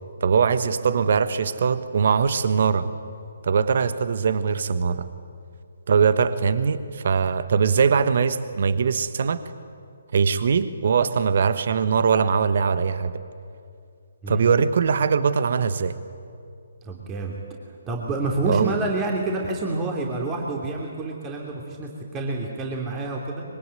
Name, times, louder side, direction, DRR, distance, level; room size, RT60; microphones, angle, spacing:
voice 1, 0.2-2.9 3.4-5.1 5.9-9.4 10.1-13.2 14.3-16.0 18.5-18.7, right 6 dB, 50° right, 13 dB, 1.3 m, -21 dB
voice 2, 16.8-17.4 17.9-23.4, right 2 dB, 15° right, 0 dB, 3.1 m, -28 dB
25.0 x 23.0 x 9.2 m, 2.4 s
figure-of-eight pair, 135°, 0 cm